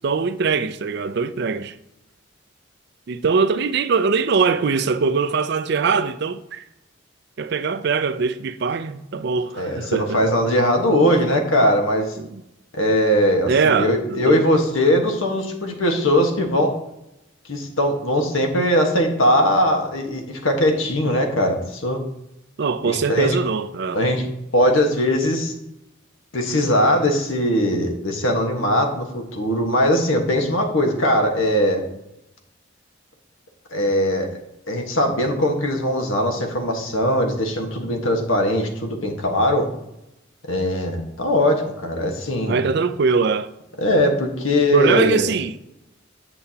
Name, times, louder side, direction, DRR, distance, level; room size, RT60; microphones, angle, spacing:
voice 1, 0.0-1.8 3.1-6.6 7.4-10.2 12.2-12.4 13.5-14.5 22.6-24.0 42.5-43.5 44.7-45.6, right 5 dB, 55° right, 0.4 m, -22 dB
voice 2, 9.5-12.1 12.7-16.7 17.5-22.0 22.8-23.4 23.9-24.2 24.5-25.5 26.3-31.9 33.7-34.3 34.7-39.7 40.5-42.6 43.8-45.3, left 1 dB, 85° left, 1.4 m, -20 dB
8.5 x 6.9 x 2.8 m
head